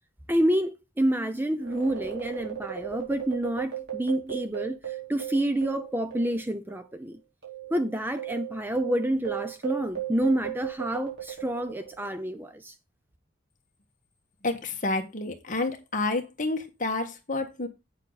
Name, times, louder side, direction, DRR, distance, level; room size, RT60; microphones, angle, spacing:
voice 1, 0.3-7.2 7.7-12.7, right 1 dB, 10° right, 0.7 m, -28 dB
sound 1, 1.6-6.4 6.7-6.8 7.4-12.2, right 11 dB, 55° right, 4.0 m, -36 dB
voice 2, 14.4-17.7, left 2 dB, 40° left, 1.6 m, -29 dB
8.3 x 7.1 x 4.1 m
head